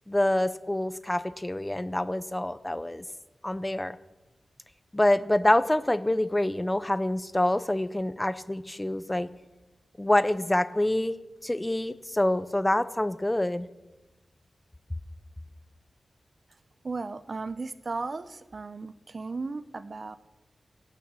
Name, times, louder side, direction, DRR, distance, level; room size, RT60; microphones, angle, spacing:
voice 1, 0.1-3.0 3.4-4.0 4.9-9.3 10.0-11.2 11.4-13.7, left 1 dB, 15° left, 13 dB, 0.6 m, -26 dB
voice 2, 16.8-20.2, right 3 dB, 45° right, 12 dB, 0.7 m, -35 dB
17.5 x 6.3 x 8.6 m, 1.1 s
wide cardioid pair, 120°, 0 cm